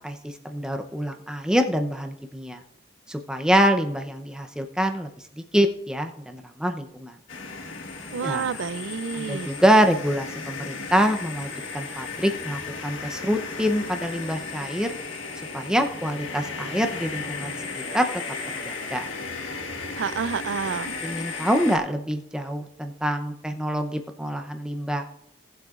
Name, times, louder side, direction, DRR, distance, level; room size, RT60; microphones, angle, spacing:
voice 1, 0.0-2.6 3.1-5.1 5.4-7.2 8.2-8.5 9.1-14.9 15.5-17.5 17.9-18.1 18.7-19.0 21.0-25.1, equal, 5° right, 0.6 m, -25 dB
sound 1, 7.3-21.8, left 4 dB, 80° left, 1.4 m, -35 dB
voice 2, 8.1-9.5 20.0-20.9, right 6 dB, 65° right, 0.4 m, -29 dB
18.5 x 7.7 x 2.5 m
head